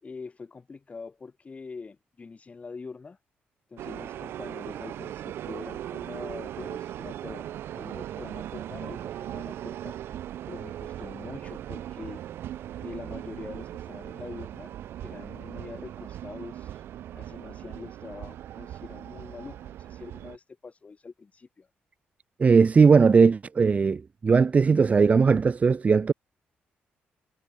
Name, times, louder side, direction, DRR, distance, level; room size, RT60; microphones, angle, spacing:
voice 1, 0.0-3.2 3.7-10.0 10.5-12.3 12.8-14.7 15.0-16.8 17.1-21.7, left 4 dB, 35° left, 4.6 m, -44 dB
sound 1, 3.8-20.4, right 12 dB, 80° right, 0.8 m, -39 dB
voice 2, 22.4-26.1, right 5 dB, 35° right, 0.6 m, -19 dB
cardioid pair, 80°, 4 cm